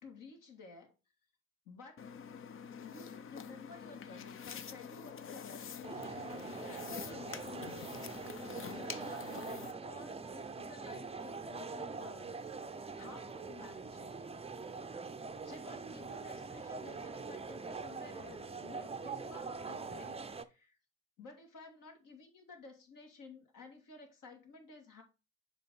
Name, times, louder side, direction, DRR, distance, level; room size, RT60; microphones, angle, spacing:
voice 1, 0.0-0.9 1.7-2.0 2.8-8.1 8.4-14.2 15.0-20.8 21.2-25.0, left 4 dB, 60° left, 2.1 m, -54 dB
sound 1, 2.0-9.7, left 7 dB, 35° left, 0.6 m, -46 dB
sound 2, 5.8-20.4, right 4 dB, 15° right, 0.6 m, -43 dB
6.7 x 4.1 x 4.7 m
hypercardioid pair, 50°, 37 cm